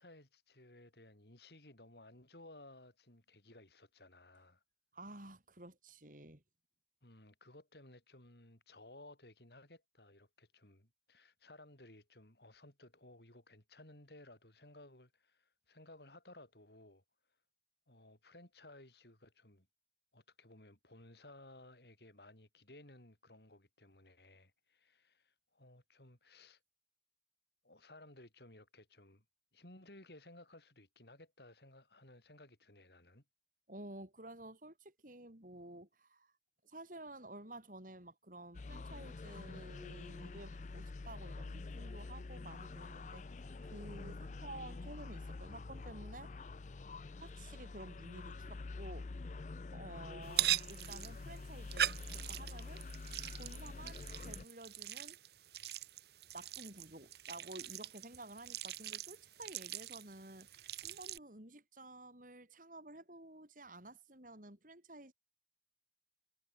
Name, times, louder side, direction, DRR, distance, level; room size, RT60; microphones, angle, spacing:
voice 1, 0.0-4.6 7.0-17.0 17.9-19.7 20.1-26.6 27.6-29.2 29.5-33.2, left 1 dB, 70° left, 5.8 m, -58 dB
voice 2, 4.9-6.4 33.7-36.3 36.6-46.5 47.2-49.2 49.7-52.9 53.4-55.2 56.3-65.1, right 1 dB, 50° right, 5.4 m, -52 dB
sound 1, 38.5-54.4, left 3 dB, 45° left, 0.5 m, -47 dB
sound 2, 50.2-61.2, right 11 dB, 65° right, 1.2 m, -41 dB
head